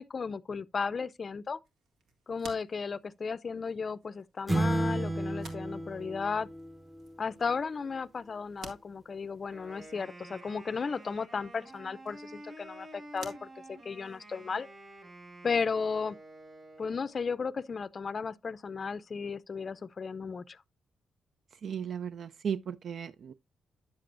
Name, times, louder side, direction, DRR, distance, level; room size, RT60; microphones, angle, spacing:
voice 1, 0.0-1.6 2.3-6.5 7.2-14.7 15.4-16.2 16.8-20.6, left 5 dB, 45° left, 0.4 m, -35 dB
sound 1, 1.6-14.5, right 3 dB, 80° right, 1.8 m, -55 dB
sound 2, 4.5-7.1, right 1 dB, 15° right, 0.8 m, -32 dB
Wind instrument woodwind instrument, 9.4-17.2, right 1 dB, 35° right, 5.7 m, -50 dB
voice 2, 21.6-23.3, right 7 dB, 65° right, 0.3 m, -35 dB
9.5 x 7.6 x 2.5 m
cardioid pair, 85°, 0 cm